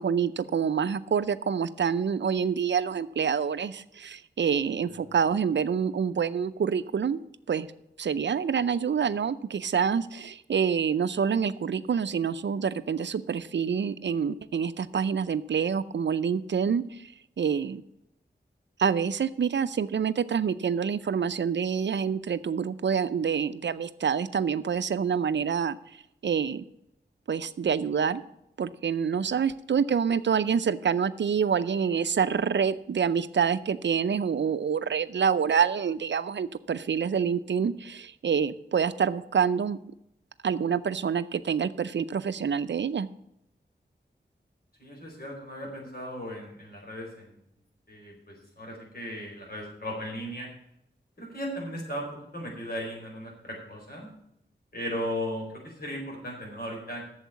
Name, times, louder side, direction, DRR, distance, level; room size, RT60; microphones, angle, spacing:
voice 1, 0.0-7.2 7.5-7.7 8.0-17.1 17.4-17.8 18.8-25.8 26.2-26.6 27.3-28.2 28.6-39.8 40.4-43.1, right 7 dB, 75° right, 14 dB, 0.5 m, -27 dB
voice 2, 44.8-47.3 47.9-50.5 51.2-52.1 52.3-54.1 54.7-57.1, equal, 55° left, -1 dB, 4.4 m, -36 dB
8.4 x 7.2 x 8.1 m, 0.79 s
wide cardioid pair, 70°, 19 cm